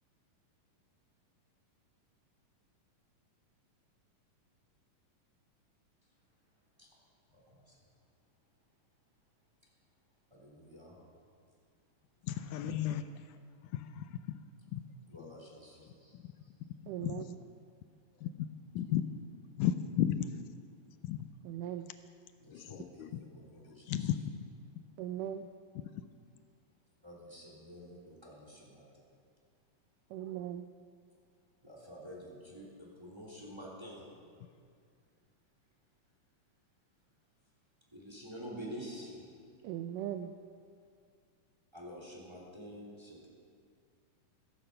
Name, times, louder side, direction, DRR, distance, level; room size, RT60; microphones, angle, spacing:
voice 1, 7.3-7.8 10.3-11.0 15.1-16.2 22.4-24.1 27.0-29.0 31.6-34.1 37.9-39.3 41.7-43.3, equal, 10° right, -3 dB, 2.8 m, -49 dB
voice 2, 12.3-13.1 13.7-14.2 14.7-14.8 15.2-15.3 17.0-17.1 18.2-18.5 18.7-19.0 19.6-20.3 21.0-21.2 22.5-23.1 23.9-24.2, left 11 dB, 80° left, 10 dB, 2.0 m, -33 dB
voice 3, 16.9-17.4 21.4-21.9 25.0-25.5 30.1-30.7 39.6-40.3, right 11 dB, 80° right, 8 dB, 2.1 m, -39 dB
14.5 x 14.5 x 5.6 m, 2.2 s
omnidirectional pair, 3.9 m